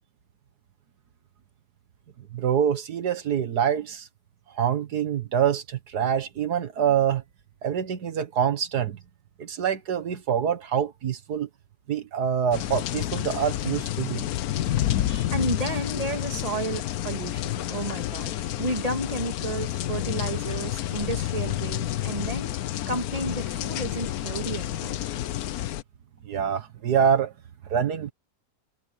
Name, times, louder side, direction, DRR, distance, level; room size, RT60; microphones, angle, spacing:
voice 1, 2.3-4.1 4.5-7.2 7.6-9.0 9.4-11.5 11.9-14.2 15.1-15.3 26.2-27.3 27.7-28.1, right 8 dB, 85° right, 2.0 m, -25 dB
sound 1, 12.5-25.8, left 13 dB, 75° left, 1.1 m, -29 dB
voice 2, 15.3-22.5 22.9-25.0, right 2 dB, 25° right, 2.2 m, -32 dB
omnidirectional pair, 1.7 m